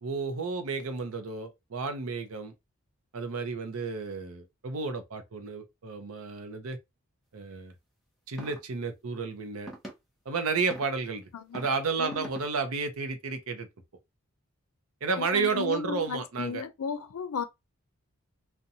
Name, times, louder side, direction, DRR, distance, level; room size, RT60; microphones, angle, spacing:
voice 1, 0.0-2.5 3.1-6.8 7.3-7.7 8.3-9.7 10.3-13.7 15.0-16.6, right 4 dB, 75° right, 0.6 m, -32 dB
sound 1, 8.4-8.6 9.7-9.9 10.7-10.9 11.5-11.7 12.1-12.4, right 1 dB, ahead, 0.5 m, -41 dB
voice 2, 11.3-11.7 12.0-12.3 15.2-17.4, left 6 dB, 85° left, 0.4 m, -35 dB
2.5 x 2.2 x 2.7 m
head